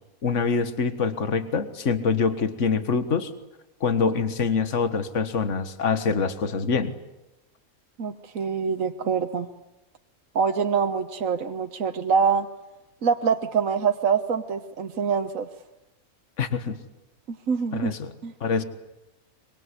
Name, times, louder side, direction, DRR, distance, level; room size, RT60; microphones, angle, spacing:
voice 1, 0.2-3.3 3.8-6.9 16.4-16.8 17.7-18.1 18.4-18.6, left 5 dB, 55° left, 11 dB, 2.0 m, -25 dB
voice 2, 8.0-9.5 10.4-12.5 13.0-15.5 17.3-17.9 18.2-18.3, right 6 dB, 65° right, 6 dB, 1.6 m, -25 dB
25.0 x 23.5 x 9.8 m, 0.95 s
omnidirectional pair, 1.5 m